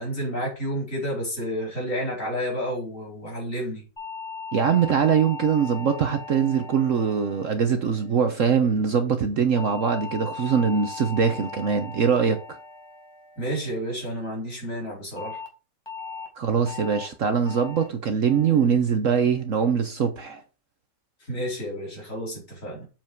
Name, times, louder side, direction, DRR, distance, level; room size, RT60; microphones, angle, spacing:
voice 1, 0.0-3.8 13.4-15.4 21.3-22.9, equal, 50° left, 4.6 m, -30 dB
sound 1, 4.0-8.4 9.6-14.0 15.2-15.5 15.9-16.3 16.7-17.1 17.5-17.9 18.3-18.7 19.1-19.5, left 5 dB, 15° left, 2.1 m, -39 dB
voice 2, 4.5-12.4 16.4-20.4, right 7 dB, 55° right, 1.1 m, -22 dB
7.4 x 5.2 x 4.5 m
omnidirectional pair, 1.8 m